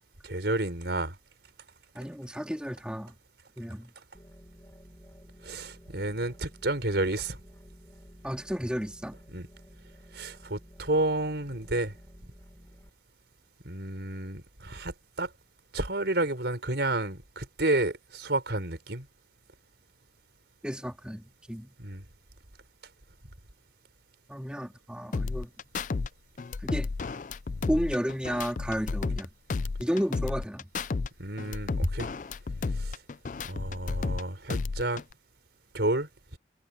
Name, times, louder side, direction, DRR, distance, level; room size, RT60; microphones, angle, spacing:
voice 1, 0.2-1.2 5.4-7.4 9.3-9.5 10.1-11.9 13.6-15.3 15.7-19.1 21.8-22.0 31.2-32.1 32.7-33.0 33.4-35.0 35.7-36.4, right 2 dB, 75° right, 4.3 m, -30 dB
voice 2, 2.0-3.1 3.6-3.9 8.2-9.2 20.6-21.7 24.3-25.5 26.6-26.9 27.7-29.3 29.8-30.7, equal, 5° right, 3.5 m, -32 dB
sound 1, 4.1-12.9, equal, 15° left, 4.0 m, -53 dB
sound 2, 25.1-26.1 26.4-29.2 29.5-31.1 31.4-34.2 34.5-35.1, left 4 dB, 45° left, 0.4 m, -32 dB
head